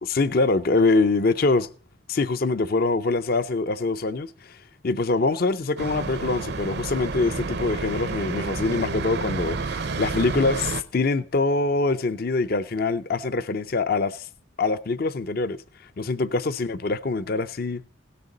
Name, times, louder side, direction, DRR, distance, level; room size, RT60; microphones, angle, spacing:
voice 1, 0.0-1.7 2.1-4.6 4.8-14.3 14.6-15.6 16.0-17.8, left 3 dB, 50° left, 0.5 m, -24 dB
sound 1, 5.8-10.8, right 4 dB, 55° right, 0.6 m, -30 dB
17.5 x 6.8 x 3.9 m
head